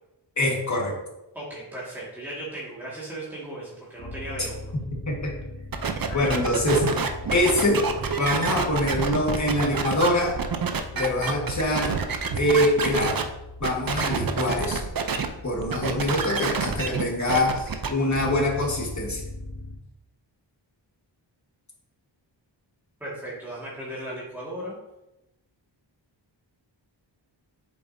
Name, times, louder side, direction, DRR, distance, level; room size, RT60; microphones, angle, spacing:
voice 1, 0.4-1.0 4.4-4.5 5.1-5.3 6.1-7.0 7.3-7.9 8.2-10.4 10.9-12.0 12.4-13.3 13.6-14.8 15.4-19.2, left 1 dB, 40° left, -1 dB, 1.8 m, -24 dB
voice 2, 1.3-4.6 23.0-24.8, right 1 dB, 5° right, -8 dB, 1.9 m, -36 dB
sound 1, 4.0-19.8, left 2 dB, 75° left, 2.4 m, -40 dB
sound 2, 5.7-13.2 13.6-15.3 15.6-17.9, right 5 dB, 50° right, 0.7 m, -27 dB
8.1 x 6.5 x 2.7 m, 0.92 s
wide cardioid pair, 115°, 46 cm